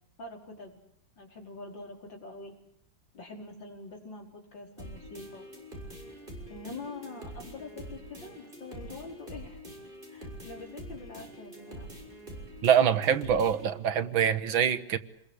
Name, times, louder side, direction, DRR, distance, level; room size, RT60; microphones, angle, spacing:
voice 1, 0.2-0.8 1.2-2.5 3.1-5.5 6.5-9.6 10.1-11.9, left 3 dB, 70° left, 1 dB, 5.7 m, -44 dB
sound 1, 4.8-13.8, equal, 25° right, 6.8 m, -45 dB
voice 2, 12.6-15.0, right 8 dB, 90° right, 12 dB, 2.1 m, -24 dB
27.5 x 22.0 x 8.2 m, 0.72 s
omnidirectional pair, 2.1 m